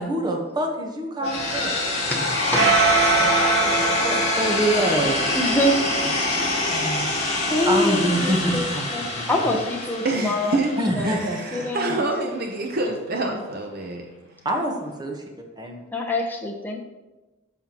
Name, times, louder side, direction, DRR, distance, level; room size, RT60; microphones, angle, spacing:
voice 1, 0.0-1.8 3.6-5.3 7.3-9.3 10.8-11.6 14.4-15.2 15.6-15.8, right 1 dB, 20° right, 2 dB, 1.2 m, -26 dB
sound 1, 1.2-11.2, left 2 dB, 35° left, 2.5 m, -25 dB
sound 2, 1.2-9.7, right 4 dB, 80° right, 1.6 m, -27 dB
voice 2, 2.1-2.7 5.3-5.8 6.5-6.7 7.5-8.6 8.9-12.9 13.2-13.4 15.9-16.8, left 1 dB, 10° left, -1 dB, 0.8 m, -26 dB
voice 3, 6.2-7.5 10.0-10.7 11.0-14.1, right 2 dB, 55° right, 1 dB, 0.8 m, -28 dB
12.5 x 5.6 x 3.0 m, 1.1 s
head